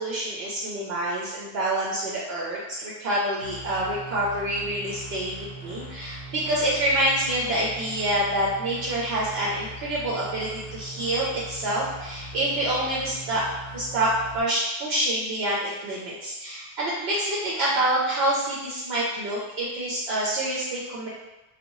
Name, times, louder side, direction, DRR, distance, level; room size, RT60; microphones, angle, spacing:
voice 1, 0.0-21.1, right 1 dB, 80° right, -6 dB, 0.8 m, -27 dB
sound 1, 3.4-14.4, right 2 dB, 75° left, 0.8 m, -41 dB
2.6 x 2.2 x 2.9 m, 1.0 s
omnidirectional pair, 1.0 m